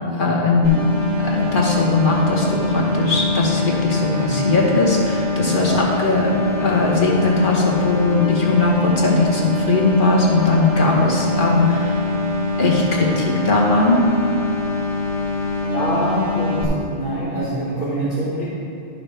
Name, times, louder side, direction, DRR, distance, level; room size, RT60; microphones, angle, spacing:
voice 1, 0.1-0.8 1.2-12.0 12.6-14.1, left 3 dB, 45° left, -2 dB, 1.4 m, -19 dB
sound 1, 0.6-16.6, left 2 dB, 25° left, 1.4 m, -24 dB
voice 2, 15.7-18.4, equal, 85° left, -11 dB, 2.7 m, -24 dB
12.0 x 5.8 x 3.4 m, 2.8 s
omnidirectional pair, 1.2 m